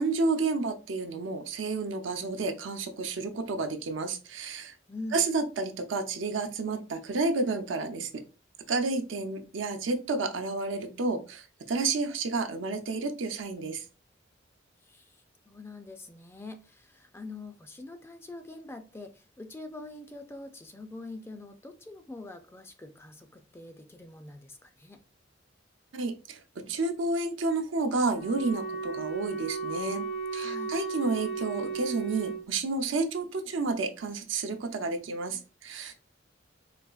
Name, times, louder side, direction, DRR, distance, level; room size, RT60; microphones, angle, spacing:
voice 1, 0.0-4.7 5.1-8.2 8.7-13.8 25.9-30.1 30.3-35.9, right 3 dB, 85° right, 0.6 m, -30 dB
voice 2, 4.9-5.2 14.8-25.0 30.3-30.7, left 2 dB, 15° left, 0.3 m, -44 dB
Wind instrument woodwind instrument, 28.1-32.4, right 4 dB, 70° left, 1.0 m, -35 dB
4.1 x 2.4 x 2.3 m
head